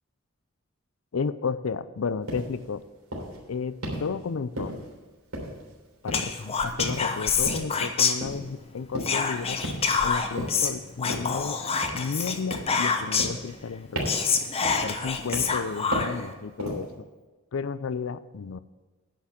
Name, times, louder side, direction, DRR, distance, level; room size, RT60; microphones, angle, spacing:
voice 1, 1.1-2.8 3.5-4.8 6.0-9.6 10.0-11.6 11.9-14.0 14.8-16.9 17.5-18.6, left 5 dB, 75° left, 15 dB, 0.5 m, -32 dB
sound 1, 2.3-2.5 3.1-3.4 3.8-4.1 4.6-5.0 5.3-5.8 6.1-6.4 6.8-7.1 7.5-7.7 8.2-8.5 8.9-9.2 9.6-10.0 10.4-10.7 11.1-11.4 11.8-12.2 12.5-12.8 13.2-13.7 14.0-14.3 14.6-15.0 15.3-15.6 15.9-16.2 16.6-16.9, equal, 90° right, 3.3 m, -34 dB
Whispering, 6.1-8.6 9.0-13.4 13.8-13.9 14.1-16.3, left 5 dB, 30° left, 0.8 m, -27 dB
10.0 x 6.0 x 8.0 m, 1.2 s
head